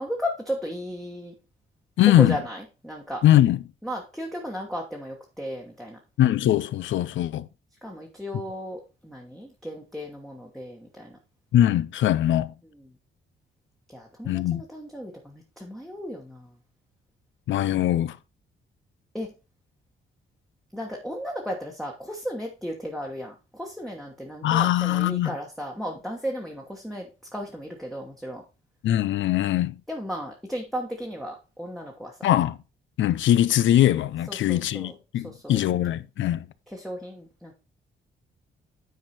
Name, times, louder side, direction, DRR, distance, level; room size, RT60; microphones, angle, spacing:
voice 1, 0.0-1.3 2.0-3.2 3.8-6.0 7.8-11.2 12.7-12.8 13.9-16.5 19.1-19.3 20.7-28.4 29.9-32.3 34.3-34.9 35.2-35.6 36.7-37.5, equal, ahead, 1.2 m, -35 dB
voice 2, 2.0-2.4 3.2-3.6 6.2-7.5 11.5-12.5 14.3-14.6 17.5-18.2 24.4-25.3 28.8-29.8 32.2-32.6 33.0-36.5, left 12 dB, 75° left, 0.6 m, -21 dB
9.4 x 4.6 x 4.3 m
cardioid pair, 145°, 20 cm